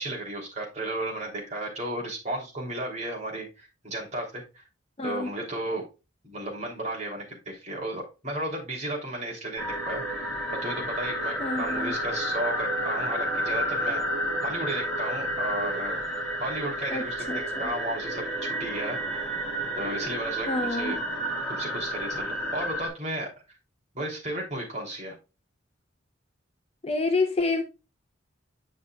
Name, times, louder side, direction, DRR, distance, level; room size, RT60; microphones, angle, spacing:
voice 1, 0.0-4.6 5.0-5.8 6.2-10.0 10.6-14.0 14.4-16.0 16.4-19.0 19.8-21.0 21.5-23.3 23.9-25.1, right 1 dB, 35° right, 3.0 m, -34 dB
voice 2, 5.0-5.3 11.4-11.9 16.9-17.7 20.4-21.0 26.8-27.6, left 3 dB, 30° left, 0.7 m, -28 dB
sound 1, 9.6-22.9, equal, 5° left, 2.8 m, -31 dB
8.6 x 6.3 x 2.3 m
head